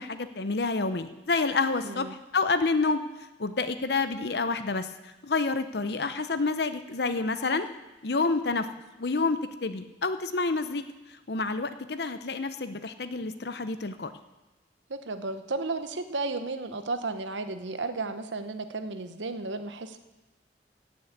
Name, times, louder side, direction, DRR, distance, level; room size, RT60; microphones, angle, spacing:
voice 1, 0.0-2.1 2.3-3.0 3.4-7.7 8.0-8.7 9.0-14.1, left 3 dB, 60° left, 11 dB, 0.8 m, -28 dB
voice 2, 1.8-2.1 14.9-20.0, right 3 dB, 85° right, 9 dB, 1.0 m, -33 dB
16.5 x 6.3 x 8.2 m, 1.1 s
head